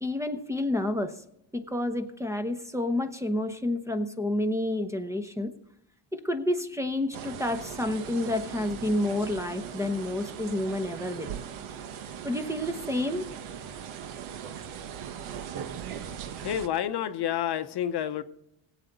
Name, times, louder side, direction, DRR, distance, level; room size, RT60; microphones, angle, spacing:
voice 1, 0.0-1.2 1.5-5.5 6.1-11.3 12.2-13.3, left 1 dB, 5° right, 8 dB, 0.8 m, -29 dB
sound 1, 7.1-16.7, right 8 dB, 85° right, 1.1 m, -39 dB
voice 2, 16.4-18.2, left 10 dB, 55° left, 11 dB, 0.8 m, -29 dB
19.0 x 8.1 x 4.0 m, 0.79 s
cardioid pair, 125°, 47 cm